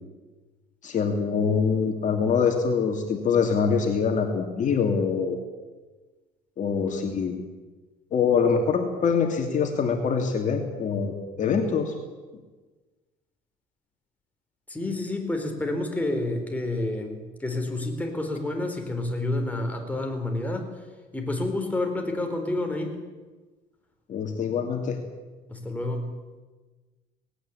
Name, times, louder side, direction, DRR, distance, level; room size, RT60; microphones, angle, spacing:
voice 1, 0.8-5.4 6.6-7.4 8.1-11.9 24.1-25.0, left 6 dB, 50° left, 3 dB, 2.6 m, -24 dB
voice 2, 14.7-20.7 21.1-23.0 25.5-26.1, left 2 dB, 10° left, 3 dB, 4.2 m, -29 dB
19.0 x 17.5 x 8.7 m, 1.3 s
cardioid pair, 110°, 17 cm